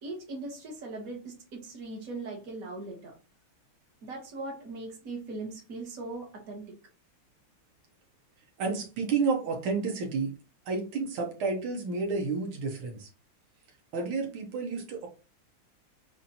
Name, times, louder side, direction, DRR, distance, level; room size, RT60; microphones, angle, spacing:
voice 1, 0.0-3.1 4.0-6.7, right 2 dB, 45° right, -1 dB, 1.7 m, -39 dB
voice 2, 8.6-10.3 10.7-13.1 13.9-15.1, right 4 dB, 80° right, 1 dB, 1.8 m, -30 dB
6.9 x 2.6 x 2.8 m, 0.33 s
omnidirectional pair, 2.3 m